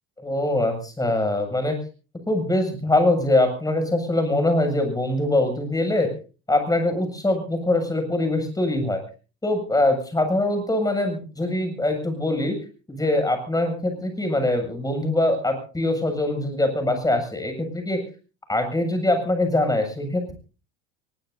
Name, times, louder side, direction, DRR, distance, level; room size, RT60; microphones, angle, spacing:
voice 1, 0.2-1.8 2.3-6.1 6.5-9.0 9.4-12.6 12.9-18.0 18.5-20.3, left 1 dB, 10° left, 6 dB, 7.6 m, -23 dB
24.0 x 21.5 x 2.8 m, 0.36 s
supercardioid pair, 85°, 31 cm